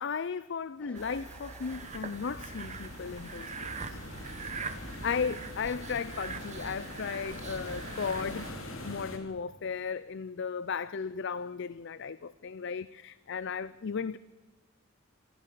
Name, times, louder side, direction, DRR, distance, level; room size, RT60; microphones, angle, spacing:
voice 1, 0.0-4.0 5.0-8.5 8.8-14.2, left 6 dB, 60° left, 0.5 m, -35 dB
sound 1, 0.8-1.9 2.4-3.4 4.0-4.4, equal, 5° left, 2.4 m, -56 dB
sound 2, 0.9-8.5, right 5 dB, 35° right, 1.2 m, -43 dB
sound 3, 1.6-9.2, left 1 dB, 85° left, 3.3 m, -43 dB
26.0 x 14.5 x 6.8 m
head